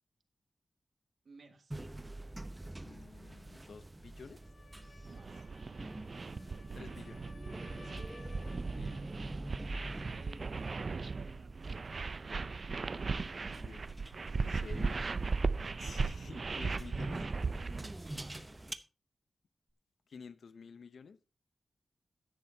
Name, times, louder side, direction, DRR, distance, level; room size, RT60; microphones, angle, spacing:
voice 1, 1.2-1.9 5.1-5.5 7.6-8.1 10.1-12.4 14.3-15.2 17.2-17.4 18.1-18.4, right 3 dB, 70° right, 1.9 m, -57 dB
sound 1, 1.7-18.7, right 1 dB, 20° right, 0.8 m, -46 dB
voice 2, 2.8-4.4 6.7-7.2 8.7-9.0 13.1-13.8 14.4-15.0 15.8-17.2 20.1-21.2, left 5 dB, 80° left, 0.7 m, -51 dB
sound 2, 4.3-9.2, left 4 dB, 65° left, 1.5 m, -60 dB
sound 3, 5.1-17.9, right 4 dB, 50° right, 0.5 m, -38 dB
13.0 x 10.0 x 2.8 m
wide cardioid pair, 100°, 0 cm